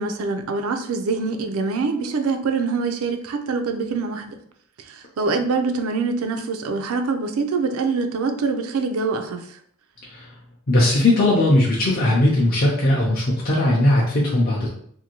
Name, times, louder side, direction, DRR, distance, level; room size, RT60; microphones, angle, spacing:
voice 1, 0.0-4.4 4.9-9.6, right 4 dB, 75° right, 7 dB, 0.4 m, -24 dB
voice 2, 10.7-14.7, left 1 dB, 40° left, -4 dB, 0.5 m, -18 dB
2.6 x 2.5 x 2.8 m, 0.64 s
head